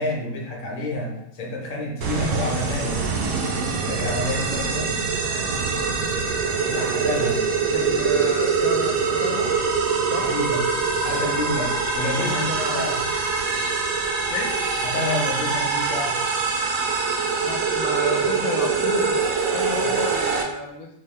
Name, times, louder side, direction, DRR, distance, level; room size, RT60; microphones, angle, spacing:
voice 1, 0.0-3.0 3.9-4.9 6.7-7.4 10.2-10.6 11.0-13.0 14.8-16.2 19.8-19.9, left 2 dB, 40° left, -2 dB, 0.9 m, -29 dB
sound 1, 2.0-20.4, right 5 dB, 75° right, 1.0 m, -24 dB
voice 2, 7.7-9.5 10.1-10.3 12.2-13.0 14.3-14.5 17.4-19.2 19.5-20.9, left 4 dB, 75° left, 0 dB, 1.0 m, -31 dB
4.2 x 2.2 x 3.3 m, 0.80 s
omnidirectional pair, 1.5 m